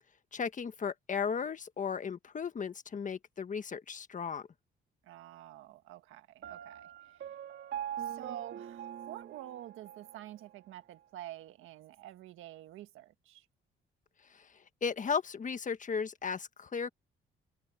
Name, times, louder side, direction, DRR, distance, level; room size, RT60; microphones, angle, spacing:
voice 1, 0.3-4.5 14.8-16.9, left 6 dB, 40° left, 1.5 m, -35 dB
voice 2, 5.0-7.3 8.0-13.4, right 13 dB, 90° right, 1.6 m, -48 dB
Piano, 6.4-10.3, right 10 dB, 65° right, 2.2 m, -42 dB
cardioid pair, 90°, 20 cm